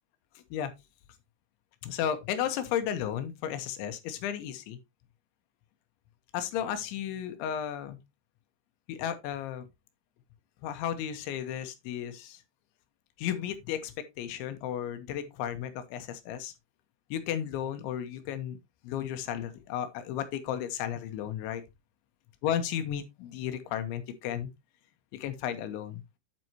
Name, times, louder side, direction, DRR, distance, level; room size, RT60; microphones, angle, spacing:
voice 1, 1.8-4.8 6.3-8.0 8.9-9.7 10.6-12.4 13.2-16.5 17.1-18.6 18.8-21.6 22.4-24.5 25.1-26.0, left 10 dB, 80° left, 3.3 m, -34 dB
9.1 x 7.6 x 2.8 m
omnidirectional pair, 5.4 m